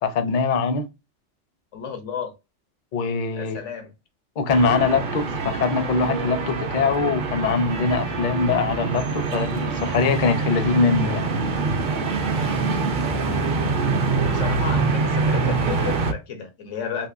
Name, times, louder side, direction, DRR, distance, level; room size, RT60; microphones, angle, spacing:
voice 1, 0.0-0.8 2.9-3.6 4.4-11.3, left 4 dB, 50° left, 0.6 m, -22 dB
voice 2, 1.7-2.3 3.3-3.9 14.2-17.1, left 7 dB, 85° left, 1.2 m, -32 dB
sound 1, 4.5-16.1, right 4 dB, 50° right, 0.7 m, -25 dB
3.5 x 2.9 x 2.5 m
omnidirectional pair, 1.2 m